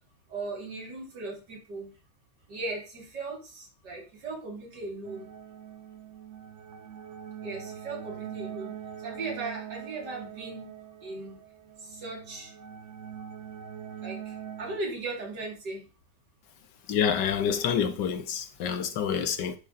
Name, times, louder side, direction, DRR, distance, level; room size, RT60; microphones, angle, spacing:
voice 1, 0.3-2.0 2.5-5.3 7.4-10.7 11.0-11.4 11.8-12.5 14.0-15.9 19.1-19.3, right 3 dB, 80° right, 3.0 m, -38 dB
sound 1, 5.0-14.8, right 9 dB, 55° right, 0.8 m, -43 dB
voice 2, 16.9-19.5, left 8 dB, 85° left, 1.5 m, -27 dB
10.5 x 3.9 x 4.1 m
omnidirectional pair, 1.8 m